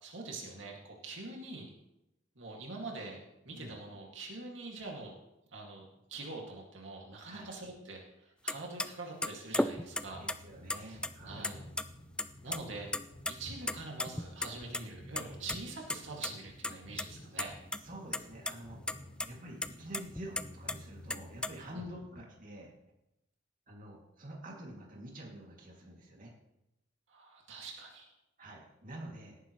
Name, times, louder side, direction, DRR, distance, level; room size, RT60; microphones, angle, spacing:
voice 1, 0.0-1.7 2.4-5.1 5.5-10.3 10.7-11.6 12.4-12.9 13.3-17.5 21.7-21.8 27.1-28.1, right 3 dB, 85° right, -1 dB, 2.3 m, -44 dB
sound 1, 8.5-8.6 8.8-8.9 9.2-10.4 10.7-11.5 11.8-11.9 12.2-12.6 12.9-13.3 13.7-14.8 15.2-15.6 15.9-16.3 16.6-17.0 17.4-17.8 18.1-18.5 18.9-19.0 19.2-19.3 19.6-20.7 21.1-21.5, left 1 dB, 5° left, 0.4 m, -34 dB
sound 2, 9.8-22.2, left 1 dB, 80° left, 4.1 m, -53 dB
voice 2, 10.1-11.6 17.8-18.8 19.2-22.7 23.7-26.3 27.5-27.6 28.4-29.4, right 1 dB, 45° right, -2 dB, 2.5 m, -47 dB
17.5 x 9.8 x 3.2 m, 0.89 s
head